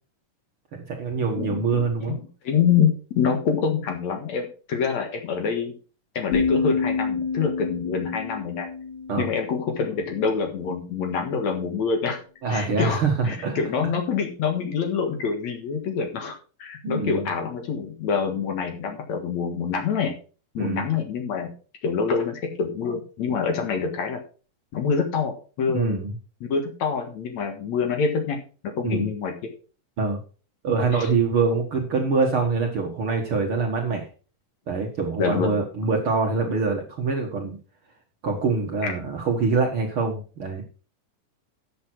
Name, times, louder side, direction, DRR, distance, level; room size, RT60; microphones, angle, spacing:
voice 1, 0.7-2.2 9.1-9.3 12.4-13.6 16.8-17.3 20.6-20.8 25.7-26.1 28.8-29.1 30.0-30.2 30.6-34.1 34.7-37.6 38.2-40.6, right 4 dB, 50° right, 2 dB, 1.9 m, -24 dB
voice 2, 2.1-5.7 6.1-8.7 9.2-12.2 12.5-20.1 20.5-21.5 21.8-24.2 24.7-26.0 26.4-28.4 28.8-29.3 30.9-31.1 35.2-35.5 38.8-38.9, left 6 dB, 55° left, 4 dB, 2.6 m, -26 dB
sound 1, 6.3-10.2, left 5 dB, 75° left, 5.0 m, -28 dB
12.5 x 7.6 x 4.5 m, 0.37 s
omnidirectional pair, 4.0 m